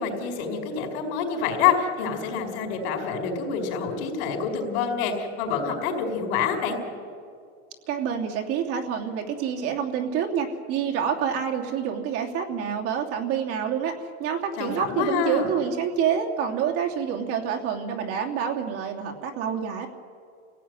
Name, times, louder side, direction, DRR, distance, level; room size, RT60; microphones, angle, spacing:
voice 1, 0.0-6.8 14.6-15.5, left 6 dB, 60° left, 3 dB, 5.0 m, -27 dB
voice 2, 7.9-19.9, right 8 dB, 45° right, 1 dB, 3.0 m, -27 dB
28.0 x 17.0 x 9.7 m, 2.3 s
supercardioid pair, 150°, 33 cm